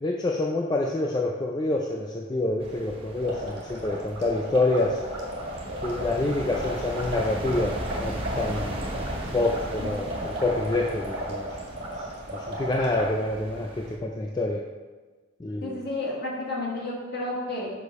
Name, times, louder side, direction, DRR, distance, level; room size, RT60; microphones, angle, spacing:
voice 1, 0.0-5.0 5.8-7.7 8.0-8.8 9.3-11.5 12.0-14.6 15.4-15.8, left 2 dB, 20° left, 0 dB, 0.3 m, -27 dB
sound 1, 2.6-14.0, right 1 dB, 25° right, 0.7 m, -37 dB
sound 2, 3.2-13.1, right 1 dB, 50° right, 1.8 m, -35 dB
voice 2, 15.6-17.7, left 2 dB, 50° left, -3 dB, 1.7 m, -32 dB
6.3 x 5.2 x 4.7 m, 1.4 s
head